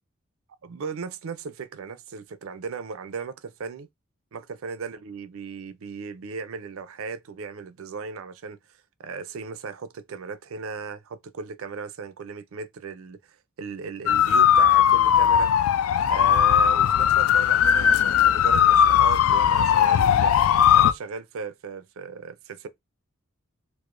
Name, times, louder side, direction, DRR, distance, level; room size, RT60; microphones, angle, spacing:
voice 1, 0.6-3.9 4.3-8.6 9.0-15.5 16.1-20.3 20.7-22.7, right 5 dB, 70° right, 0.4 m, -36 dB
sound 1, 14.1-20.9, left 9 dB, 70° left, 0.3 m, -18 dB
4.7 x 2.0 x 2.5 m
head